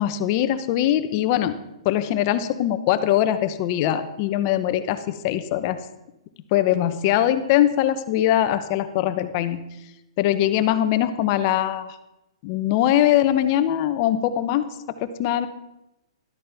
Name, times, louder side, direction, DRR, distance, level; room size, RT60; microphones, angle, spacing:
voice 1, 0.0-1.5 1.8-5.0 5.2-5.8 6.5-9.6 10.2-11.9 12.4-14.7 15.0-15.5, left 12 dB, 40° left, 11 dB, 0.9 m, -21 dB
13.0 x 12.5 x 3.5 m, 0.91 s
hypercardioid pair, 130°, 3 cm